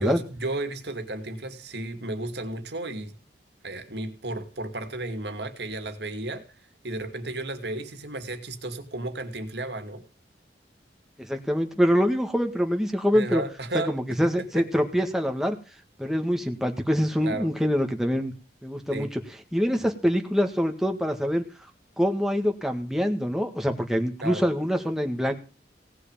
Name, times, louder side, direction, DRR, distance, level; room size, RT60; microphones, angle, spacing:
voice 1, 0.0-3.2 3.6-6.5 6.8-10.0 13.1-14.6 17.2-17.5 18.9-19.1 24.2-24.4, right 2 dB, 70° right, 9 dB, 2.5 m, -33 dB
voice 2, 11.2-13.4 13.9-15.6 16.0-18.3 18.6-19.2 19.5-21.4 22.0-25.3, equal, ahead, 4 dB, 1.8 m, -25 dB
18.0 x 6.5 x 9.1 m, 0.35 s
head